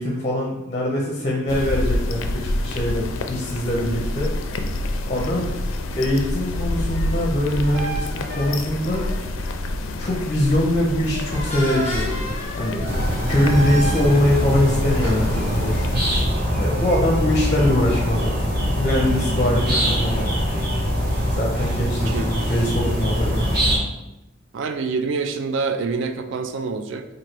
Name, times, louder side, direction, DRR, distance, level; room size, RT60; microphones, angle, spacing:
voice 1, 0.0-4.3 5.1-5.5 5.9-9.3 10.0-12.9 13.3-15.7 16.6-18.3 18.8-20.3 21.3-23.4, left 1 dB, 30° left, -1 dB, 0.5 m, -23 dB
sound 1, 1.5-16.2, left 1 dB, 90° left, 0.4 m, -28 dB
sound 2, 6.9-9.5 9.9-10.2 11.1-14.5 14.9-15.1, equal, 30° right, 1.1 m, -32 dB
sound 3, 12.8-23.8, equal, 50° right, 1.0 m, -23 dB
voice 2, 24.5-27.1, right 4 dB, 65° right, 7 dB, 0.3 m, -26 dB
3.0 x 2.6 x 4.3 m, 0.98 s
head